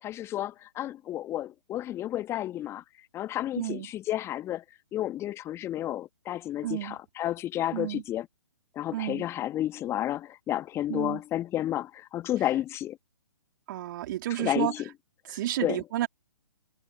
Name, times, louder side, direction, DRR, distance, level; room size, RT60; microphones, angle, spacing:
voice 1, 0.0-2.8 3.1-4.6 4.9-8.3 8.7-13.0 14.4-14.8 15.3-15.8, left 13 dB, 15° left, 1.4 m, -31 dB
voice 2, 3.6-3.9 6.6-7.0 7.7-8.0 8.9-9.3 10.9-11.2 13.7-14.7 15.3-16.1, right 14 dB, 35° right, 3.5 m, -31 dB
figure-of-eight pair, 130°, 18 cm